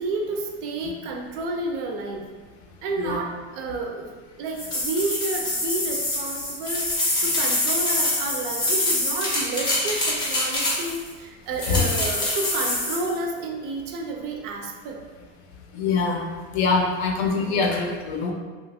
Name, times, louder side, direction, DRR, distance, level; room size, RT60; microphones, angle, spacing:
voice 1, 0.0-2.3 2.8-4.1 4.4-15.0 17.4-17.6, right 3 dB, 55° right, 2 dB, 0.4 m, -30 dB
sound 1, 4.6-11.1 11.6-13.1, left 1 dB, 15° left, 0.3 m, -25 dB
voice 2, 15.7-16.3 16.5-18.3, left 4 dB, 70° left, 2 dB, 0.6 m, -23 dB
2.9 x 2.4 x 2.6 m, 1.4 s
supercardioid pair, 160°, 34 cm